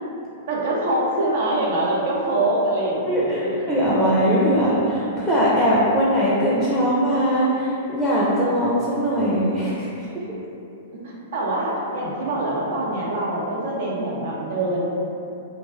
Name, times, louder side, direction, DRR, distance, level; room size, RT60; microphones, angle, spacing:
voice 1, 0.5-3.6 10.9-14.9, right 1 dB, 55° right, -5 dB, 0.6 m, -24 dB
voice 2, 3.1-9.9 10.1-10.2, equal, 5° left, -9 dB, 0.5 m, -20 dB
2.4 x 2.1 x 3.5 m, 2.8 s
figure-of-eight pair, 100°, 0 cm